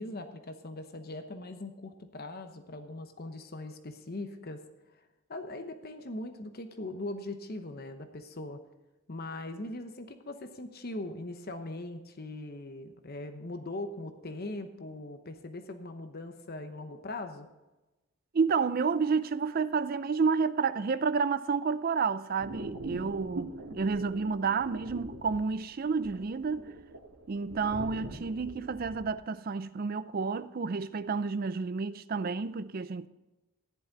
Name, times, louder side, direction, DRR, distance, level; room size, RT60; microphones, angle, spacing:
voice 1, 0.0-4.6 4.9-5.0 5.3-8.6 9.1-17.5, left 2 dB, 45° left, 0.9 m, -40 dB
voice 2, 18.3-26.7 27.3-33.1, right 5 dB, 40° right, 0.4 m, -30 dB
sound 1, 22.4-29.1, right 2 dB, 80° right, 2.3 m, -43 dB
14.5 x 10.5 x 4.0 m
head